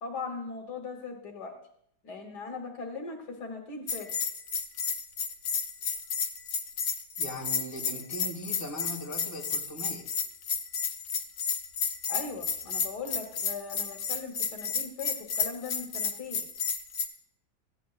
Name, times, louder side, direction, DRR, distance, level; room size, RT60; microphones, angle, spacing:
voice 1, 0.0-1.5 2.0-4.1 12.1-16.4, left 4 dB, 65° left, 2 dB, 1.7 m, -39 dB
Bell, 3.9-17.1, left 6 dB, 80° left, 1.5 m, -32 dB
voice 2, 7.2-10.0, equal, 10° left, -3 dB, 1.7 m, -39 dB
15.0 x 9.1 x 2.4 m, 0.68 s
omnidirectional pair, 2.0 m